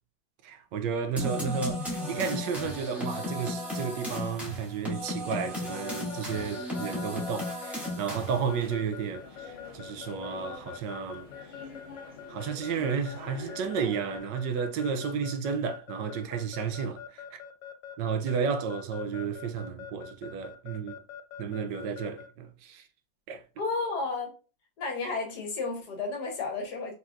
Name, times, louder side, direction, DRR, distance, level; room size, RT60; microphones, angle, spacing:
voice 1, 0.4-11.3 12.3-17.4 18.0-21.0 21.4-22.8 23.3-23.4, right 6 dB, 75° right, 1.3 m, -32 dB
sound 1, 1.2-8.5, left 1 dB, ahead, 1.6 m, -35 dB
Keyboard (musical) / Alarm, 5.7-22.3, left 8 dB, 90° left, 1.3 m, -44 dB
sound 2, 8.3-14.2, left 4 dB, 40° left, 1.4 m, -47 dB
voice 2, 23.6-24.3 24.8-26.9, left 3 dB, 65° left, 1.6 m, -32 dB
4.3 x 3.9 x 2.4 m
omnidirectional pair, 2.0 m